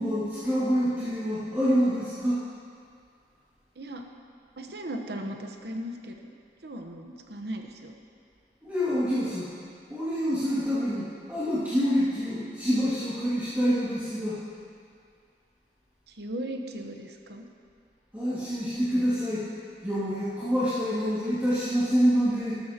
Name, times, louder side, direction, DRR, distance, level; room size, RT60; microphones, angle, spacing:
voice 1, 0.0-2.4 8.6-9.5 9.9-14.4 18.1-19.5 19.8-22.5, equal, 10° right, -13 dB, 2.2 m, -26 dB
voice 2, 4.6-6.3 6.6-7.9 16.1-17.4, right 1 dB, 65° right, 3 dB, 1.0 m, -37 dB
13.0 x 13.0 x 2.9 m, 2.3 s
head